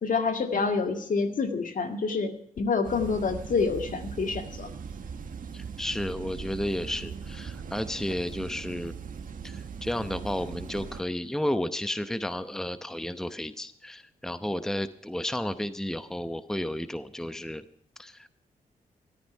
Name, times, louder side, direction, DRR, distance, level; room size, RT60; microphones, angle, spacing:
voice 1, 0.0-4.7, left 4 dB, 65° left, 6 dB, 2.0 m, -27 dB
sound 1, 2.8-11.0, right 6 dB, 65° right, 1.7 m, -40 dB
voice 2, 5.5-9.0 9.4-17.6 18.0-18.3, left 1 dB, 5° left, 11 dB, 0.8 m, -32 dB
14.0 x 13.0 x 5.5 m, 0.70 s
cardioid pair, 70°, 15 cm